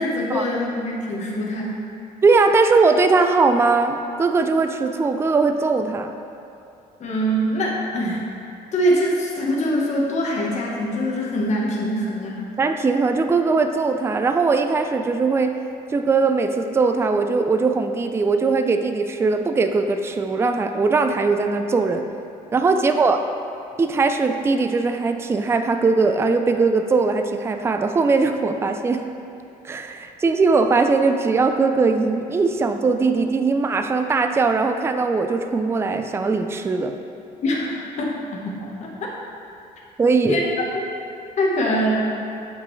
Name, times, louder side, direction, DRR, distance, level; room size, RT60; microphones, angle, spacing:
voice 1, 0.0-1.9 7.0-8.2 8.7-12.4 22.8-22.9 37.4-39.1 40.3-40.8 41.4-42.1, equal, 50° left, -3 dB, 1.2 m, -23 dB
voice 2, 2.2-6.1 12.6-15.6 15.9-22.1 22.5-23.2 23.8-29.0 29.6-37.0 40.0-40.4, right 4 dB, 15° right, 7 dB, 0.3 m, -20 dB
7.8 x 5.2 x 3.1 m, 2.7 s
cardioid pair, 105°, 15 cm